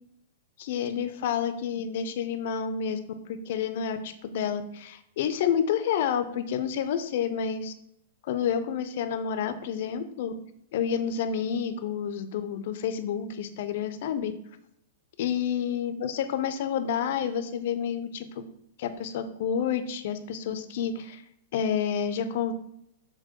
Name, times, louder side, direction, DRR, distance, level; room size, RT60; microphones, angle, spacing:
voice 1, 0.6-3.0 3.3-7.7 8.2-10.3 10.7-14.3 15.2-18.4 18.8-21.2 21.5-22.5, left 8 dB, 55° left, 9 dB, 0.4 m, -29 dB
6.0 x 2.1 x 2.9 m, 0.76 s
figure-of-eight pair, 105°, 0 cm